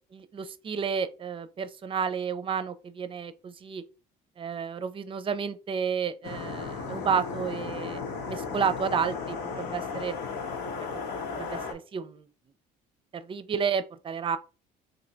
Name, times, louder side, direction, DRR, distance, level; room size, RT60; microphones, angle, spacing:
voice 1, 0.1-3.8 4.4-10.2 11.4-12.3 13.1-14.4, right 6 dB, 30° right, 0.5 m, -31 dB
sound 1, 6.2-11.7, left 5 dB, 90° left, 1.1 m, -35 dB
3.2 x 2.7 x 3.9 m
cardioid pair, 110°, 17 cm